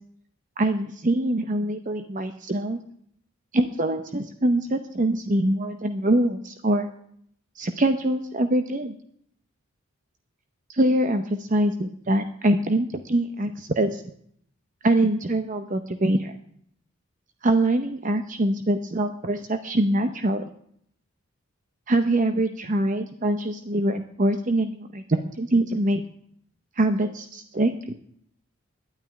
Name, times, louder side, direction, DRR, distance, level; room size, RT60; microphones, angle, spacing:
voice 1, 0.6-2.8 3.5-6.9 7.6-9.0 10.7-14.0 14.8-16.3 17.4-20.4 21.9-26.0 26.8-27.9, right 1 dB, 35° right, 8 dB, 0.7 m, -24 dB
11.5 x 9.3 x 9.9 m, 0.67 s
head